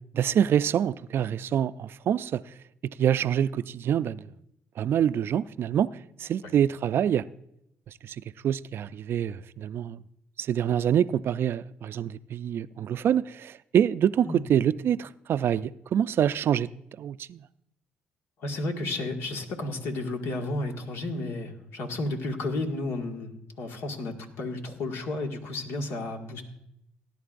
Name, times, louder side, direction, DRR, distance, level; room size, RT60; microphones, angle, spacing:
voice 1, 0.1-2.4 3.0-4.3 4.8-5.9 6.2-7.3 8.0-8.2 8.4-10.0 10.4-16.7 17.0-17.4, right 9 dB, 60° right, 0.4 m, -26 dB
voice 2, 18.4-23.3 23.6-26.4, left 2 dB, 75° left, 1.8 m, -32 dB
18.5 x 10.5 x 2.6 m
supercardioid pair, 65°, 4 cm